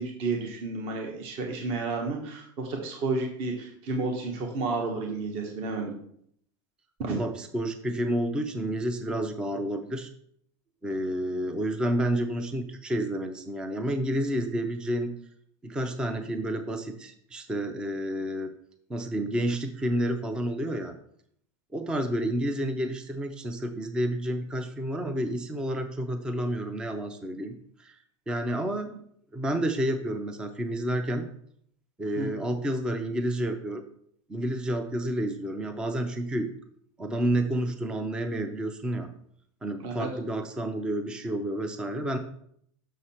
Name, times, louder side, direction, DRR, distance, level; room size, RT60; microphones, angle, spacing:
voice 1, 0.0-5.9 7.0-7.1 32.2-32.5 39.8-40.1, right 3 dB, 35° right, 2 dB, 1.2 m, -31 dB
voice 2, 7.1-10.1 10.8-15.1 15.6-18.5 18.9-21.0 21.7-27.5 27.8-28.0 28.3-29.0 29.3-31.2 32.0-33.8 34.3-36.5 37.0-39.1 39.6-42.2, right 1 dB, 5° right, 8 dB, 0.4 m, -30 dB
6.5 x 6.4 x 4.3 m, 0.65 s
supercardioid pair, 175°, 15 cm